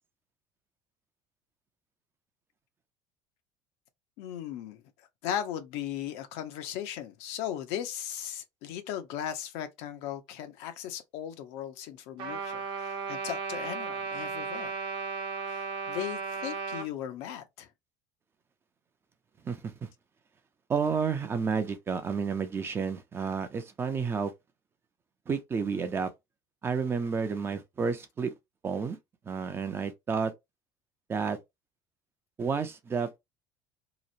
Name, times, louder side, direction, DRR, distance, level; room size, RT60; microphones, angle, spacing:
voice 1, 4.2-4.8 5.2-14.8 15.5-17.7, left 10 dB, 70° left, 0.7 m, -37 dB
Trumpet, 12.2-16.9, right 4 dB, 45° right, 0.8 m, -35 dB
voice 2, 19.4-19.9 20.7-24.3 25.3-26.1 26.6-28.3 28.6-29.0 29.3-30.3 31.1-31.4 32.4-33.2, right 5 dB, 20° right, 0.5 m, -30 dB
2.9 x 2.0 x 2.5 m
cardioid pair, 145°, 11 cm